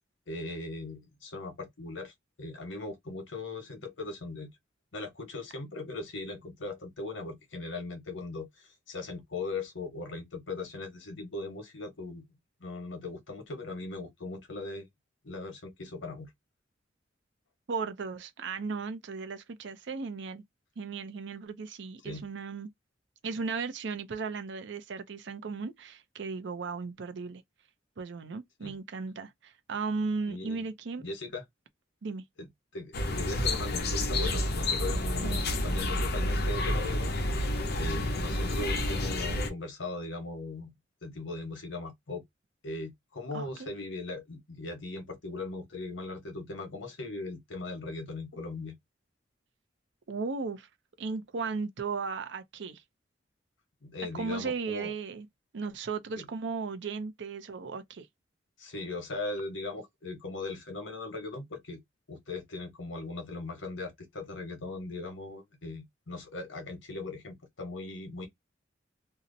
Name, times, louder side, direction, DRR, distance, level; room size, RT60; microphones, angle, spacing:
voice 1, 0.3-2.1 2.4-4.5 4.9-12.2 12.6-14.9 15.2-16.3 22.0-22.3 28.6-28.7 30.3-30.6 31.0-31.4 32.4-37.1 37.8-40.7 41.0-42.2 42.6-48.8 53.8-54.9 56.2-56.3 58.6-61.8 62.1-68.3, left 2 dB, 80° left, 1.0 m, -39 dB
voice 2, 17.7-20.4 20.8-22.7 23.2-27.4 28.0-31.0 32.0-32.2 35.1-35.5 38.0-38.1 43.3-43.7 50.1-50.7 51.0-52.8 54.1-55.3 55.5-58.1, right 4 dB, 70° right, 0.5 m, -36 dB
sound 1, 32.9-39.5, left 1 dB, 60° left, 0.7 m, -29 dB
2.7 x 2.0 x 2.6 m
head